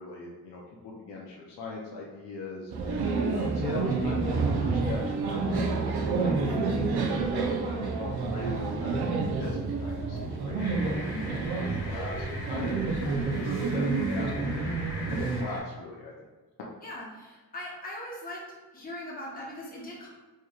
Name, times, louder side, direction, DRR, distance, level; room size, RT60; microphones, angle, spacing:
voice 1, 0.0-5.6 6.2-13.1 13.4-14.5 15.0-16.1, left 2 dB, 85° left, -3 dB, 0.7 m, -40 dB
sound 1, 2.7-15.4, right 4 dB, 75° right, 0.6 m, -29 dB
sound 2, 10.6-15.6, left 1 dB, 70° left, 1.2 m, -42 dB
voice 2, 11.0-11.3 16.8-18.4 18.7-20.1, left 1 dB, 20° left, -5 dB, 1.0 m, -40 dB
4.4 x 3.1 x 2.3 m, 1.3 s
wide cardioid pair, 130°, 39 cm